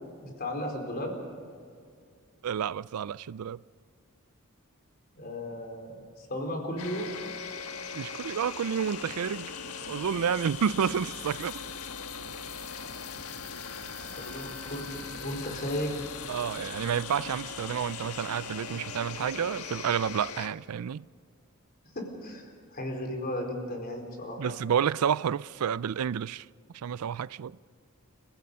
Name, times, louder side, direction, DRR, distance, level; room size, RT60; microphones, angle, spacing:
voice 1, 0.2-1.1 5.2-7.1 14.0-16.1 21.9-24.5, left 1 dB, 45° left, 4.4 m, -35 dB
voice 2, 2.4-3.6 7.9-9.5 9.8-11.6 16.3-21.0 24.4-26.5 26.7-27.6, right 8 dB, 85° right, 0.4 m, -30 dB
sound 1, 6.8-20.5, left 6 dB, 85° left, 1.4 m, -40 dB
29.5 x 16.0 x 5.5 m
head